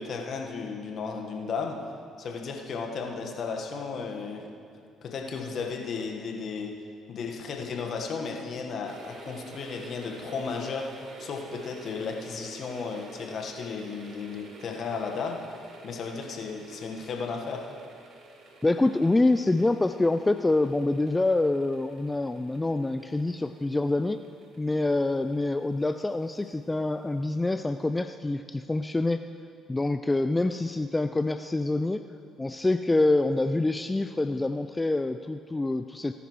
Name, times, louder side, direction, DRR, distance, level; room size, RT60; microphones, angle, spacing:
voice 1, 0.0-1.8 2.2-4.5 5.0-6.7 7.1-10.9 11.2-15.4 15.8-17.7, left 5 dB, 55° left, 1 dB, 1.4 m, -34 dB
sound 1, 8.8-27.5 27.8-27.9, right 3 dB, 55° right, 1.5 m, -50 dB
voice 2, 18.6-24.2 24.6-29.2 29.7-32.0 32.4-36.1, left 2 dB, 20° left, 9 dB, 0.4 m, -26 dB
18.5 x 9.9 x 3.2 m, 2.4 s
hypercardioid pair, 50°, 0 cm